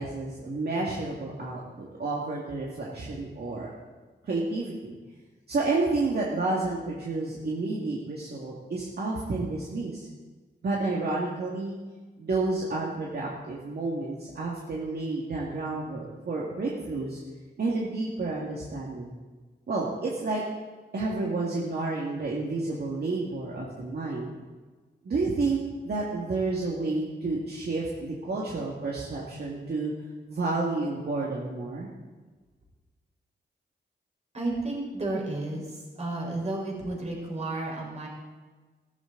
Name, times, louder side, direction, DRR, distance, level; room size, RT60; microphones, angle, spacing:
voice 1, 0.0-3.7 4.2-5.0 5.5-10.1 10.6-11.8 12.2-17.2 17.6-19.1 19.7-20.4 20.9-24.3 25.0-29.9 30.3-31.9, right 3 dB, 60° right, -4 dB, 2.2 m, -30 dB
voice 2, 34.3-38.1, right 2 dB, 35° right, -3 dB, 4.9 m, -32 dB
15.5 x 14.0 x 4.0 m, 1.3 s
wide cardioid pair, 120°, 19 cm